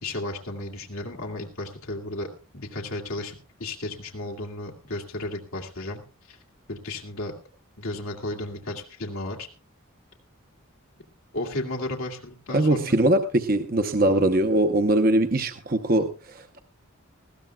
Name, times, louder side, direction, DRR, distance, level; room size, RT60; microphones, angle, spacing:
voice 1, 0.0-2.3 2.5-6.0 6.3-6.4 6.7-7.3 7.8-9.5 11.3-13.0, left 1 dB, 85° left, 0 dB, 2.2 m, -34 dB
voice 2, 12.5-16.6, right 1 dB, 45° right, 7 dB, 0.8 m, -22 dB
20.0 x 16.0 x 2.3 m, 0.34 s
head